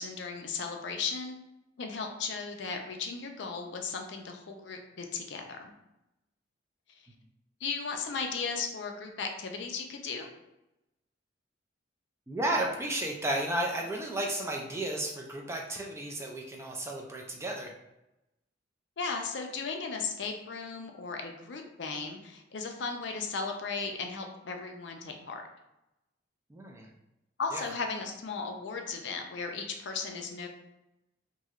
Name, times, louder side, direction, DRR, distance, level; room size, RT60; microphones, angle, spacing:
voice 1, 0.0-1.4 1.8-5.7 7.6-10.3 19.0-25.4 27.4-30.5, left 4 dB, 65° left, 4 dB, 0.4 m, -36 dB
voice 2, 12.3-17.7 26.5-26.9 27.5-27.7, right 1 dB, 15° right, 0 dB, 0.3 m, -33 dB
3.1 x 2.7 x 2.4 m, 0.92 s
head